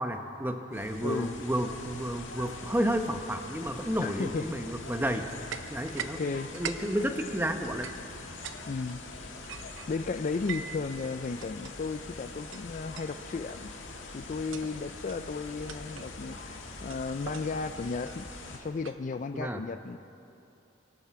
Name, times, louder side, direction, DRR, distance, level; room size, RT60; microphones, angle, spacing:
voice 1, 0.0-5.3 5.7-6.2 6.5-7.9 19.3-19.6, equal, 10° right, 6 dB, 0.8 m, -31 dB
sound 1, 0.7-18.6, left 3 dB, 80° left, 1.7 m, -44 dB
voice 2, 1.0-1.3 4.0-4.4 6.2-6.5 8.7-9.0 9.9-13.7 14.1-20.0, left 4 dB, 40° left, 10 dB, 0.3 m, -34 dB
sound 2, 5.5-6.2 6.4-8.6 8.9-10.8 11.4-11.7 12.5-12.6 12.9-13.2 13.5-13.8 14.3-14.7 15.1-15.3 15.7-16.1 16.9-19.4, right 7 dB, 75° right, 0.7 m, -42 dB
24.0 x 12.5 x 4.7 m, 2.7 s
head